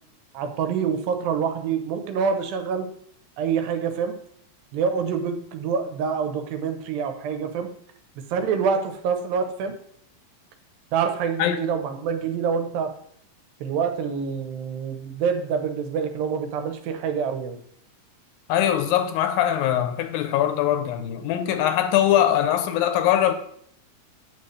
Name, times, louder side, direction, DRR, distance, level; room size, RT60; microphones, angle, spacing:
voice 1, 0.3-2.9 3.4-4.1 4.7-7.7 8.3-9.7 10.9-12.9 13.6-17.6, right 6 dB, 85° right, 2.6 m, -26 dB
voice 2, 18.5-23.3, left 11 dB, 90° left, 2.5 m, -22 dB
8.8 x 7.1 x 3.2 m
omnidirectional pair, 4.1 m